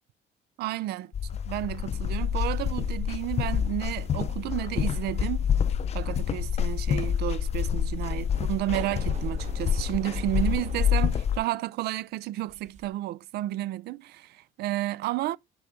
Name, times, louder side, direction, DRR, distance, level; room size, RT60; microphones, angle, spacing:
voice 1, 0.6-1.1 1.5-5.5 5.9-15.4, right 15 dB, 70° right, 0.4 m, -31 dB
sound 1, 1.1-11.4, left 8 dB, 40° left, 0.5 m, -27 dB
sound 2, 8.3-11.2 12.4-12.9, right 6 dB, 45° right, 1.1 m, -44 dB
6.0 x 6.0 x 3.7 m
cardioid pair, 110°, 17 cm